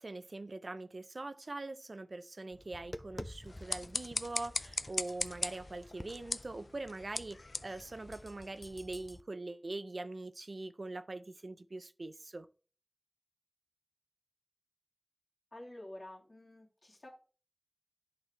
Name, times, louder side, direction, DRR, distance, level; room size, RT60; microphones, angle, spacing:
voice 1, 0.0-12.5, right 2 dB, 70° right, 0.5 m, -43 dB
Tap, 2.5-9.2, left 1 dB, 15° left, 0.5 m, -51 dB
sound 1, 3.4-8.7, left 3 dB, 80° left, 0.4 m, -40 dB
voice 2, 15.5-17.1, left 1 dB, 65° left, 2.6 m, -49 dB
11.0 x 4.1 x 3.2 m
wide cardioid pair, 60°, 0 cm